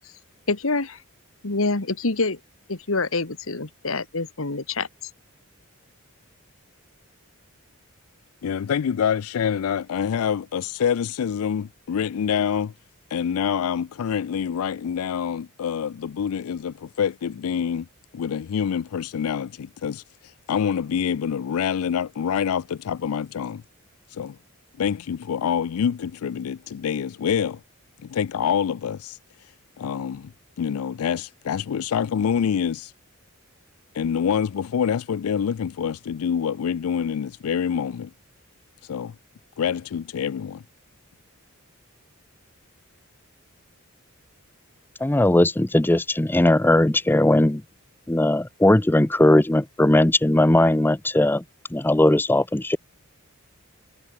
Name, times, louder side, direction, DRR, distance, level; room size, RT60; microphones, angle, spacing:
voice 1, 0.5-1.0 1.4-2.4 2.7-4.9, left 3 dB, 70° left, 1.7 m, -26 dB
voice 2, 8.4-12.7 13.1-17.9 18.1-23.6 24.1-24.4 24.8-27.6 28.1-29.2 29.8-30.3 30.6-32.9 33.9-38.1 38.8-39.1 39.6-40.6, left 7 dB, 85° left, 0.4 m, -26 dB
voice 3, 45.0-47.6 48.1-51.4 51.7-52.8, left 1 dB, 10° left, 0.5 m, -19 dB
head